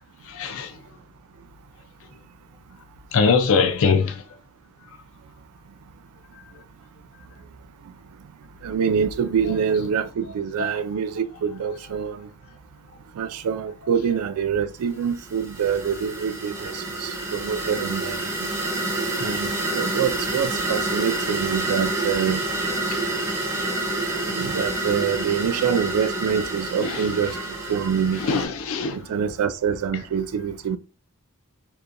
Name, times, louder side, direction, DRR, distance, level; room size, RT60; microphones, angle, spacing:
voice 1, 0.3-0.7 3.1-4.2 9.4-9.5 10.6-10.7 22.9-23.0 26.8-27.0 28.1-29.1, left 5 dB, 65° left, 0.4 m, -22 dB
voice 2, 8.6-12.3 13.2-18.5 19.2-22.4 24.3-28.2 28.9-30.8, right 7 dB, 75° right, 0.3 m, -25 dB
sound 1, 15.1-28.5, right 2 dB, 15° right, 0.4 m, -28 dB
2.8 x 2.2 x 2.4 m
head